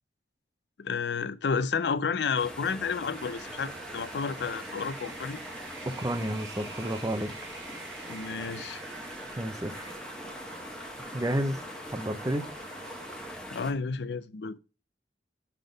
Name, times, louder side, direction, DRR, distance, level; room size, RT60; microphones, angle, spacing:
voice 1, 0.8-5.4 8.1-8.8 13.5-14.6, left 5 dB, 70° left, 0.5 m, -31 dB
sound 1, 2.3-13.7, left 1 dB, 5° left, 0.9 m, -42 dB
sound 2, 3.1-13.3, right 5 dB, 80° right, 0.9 m, -47 dB
voice 2, 6.0-7.3 9.4-9.9 11.1-11.6 11.9-12.5, right 1 dB, 20° right, 0.5 m, -31 dB
5.9 x 3.5 x 5.1 m
head